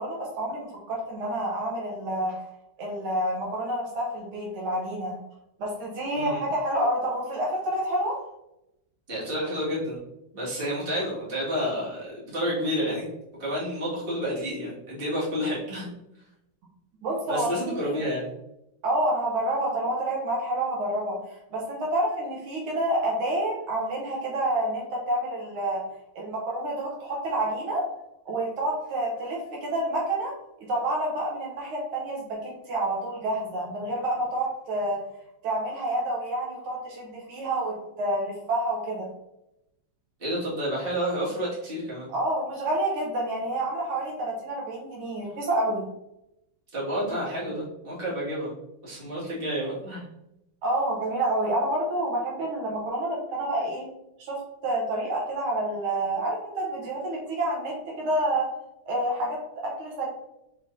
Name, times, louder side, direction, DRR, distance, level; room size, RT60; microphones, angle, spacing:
voice 1, 0.0-2.4 2.8-5.2 5.6-8.2 17.0-18.0 18.8-21.2 21.5-25.8 26.2-27.8 28.3-30.3 30.6-35.0 35.4-39.1 42.1-45.9 50.6-53.9 54.2-54.4 54.6-58.5 58.9-60.1, right 1 dB, 80° right, -2 dB, 1.8 m, -28 dB
voice 2, 6.1-6.4 9.1-10.0 10.3-13.1 13.4-15.9 17.3-18.3 40.2-42.1 46.7-48.5 48.8-50.0, equal, 30° right, -8 dB, 1.9 m, -30 dB
4.9 x 3.8 x 2.6 m, 0.86 s
omnidirectional pair, 2.3 m